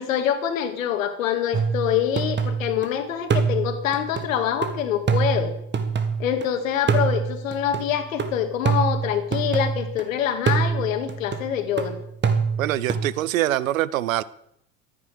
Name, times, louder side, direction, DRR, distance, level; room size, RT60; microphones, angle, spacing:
voice 1, 0.0-5.5 6.2-12.0, left 9 dB, 80° left, 8 dB, 2.2 m, -25 dB
sound 1, 1.5-2.9 3.3-6.5 6.9-10.0 10.5-13.1, right 5 dB, 25° right, 2.0 m, -25 dB
voice 2, 12.6-14.2, right 14 dB, 85° right, 20 dB, 0.8 m, -24 dB
13.5 x 9.7 x 6.7 m, 0.76 s
hypercardioid pair, 85°, 39 cm